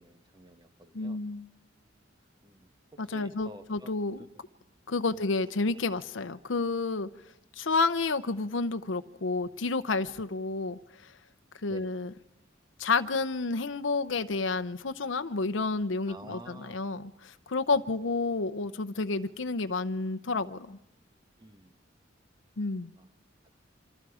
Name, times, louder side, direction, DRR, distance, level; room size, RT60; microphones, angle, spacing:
voice 1, 0.0-1.2 2.4-2.7 3.1-4.4 5.1-5.3 7.7-7.8 11.7-11.9 16.1-16.8 17.7-18.1 21.4-21.8 23.0-23.1, right 1 dB, 20° right, 8 dB, 1.4 m, -50 dB
voice 2, 0.9-1.5 3.0-4.2 4.9-7.1 7.6-11.1 11.6-12.1 12.8-20.8 22.6-22.9, left 3 dB, 75° left, 10 dB, 0.7 m, -30 dB
27.5 x 25.0 x 5.0 m, 0.88 s
head